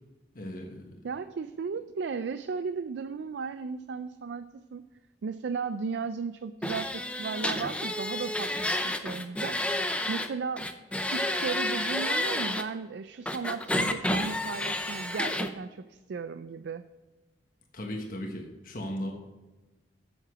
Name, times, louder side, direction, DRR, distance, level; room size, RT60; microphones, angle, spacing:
voice 1, 0.3-1.0 17.7-19.1, equal, 50° left, 1 dB, 1.3 m, -36 dB
voice 2, 1.0-4.8 5.2-9.6 10.1-10.7 11.1-16.8, right 5 dB, 75° right, 11 dB, 0.4 m, -35 dB
sound 1, 6.6-10.3 10.6-12.6 13.3-15.5, left 1 dB, 5° left, 0.6 m, -30 dB
7.9 x 7.5 x 6.1 m, 1.1 s
head